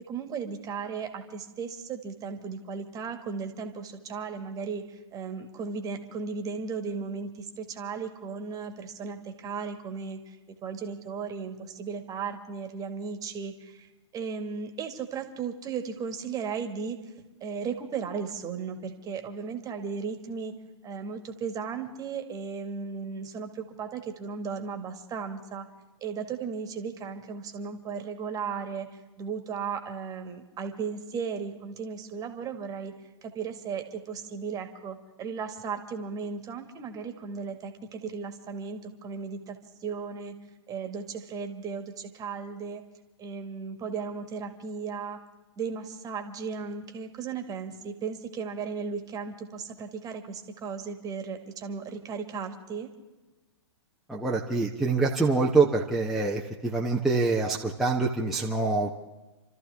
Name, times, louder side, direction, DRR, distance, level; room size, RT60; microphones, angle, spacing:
voice 1, 0.1-10.4 10.6-13.9 14.1-17.0 17.4-20.5 20.8-25.7 26.0-28.9 29.2-32.9 33.2-40.3 40.7-42.8 43.2-45.2 45.6-52.9, right 5 dB, 25° right, 6 dB, 2.0 m, -36 dB
voice 2, 54.1-58.9, right 3 dB, ahead, -4 dB, 1.2 m, -25 dB
28.5 x 13.5 x 3.6 m, 1.1 s
hypercardioid pair, 125°, 15 cm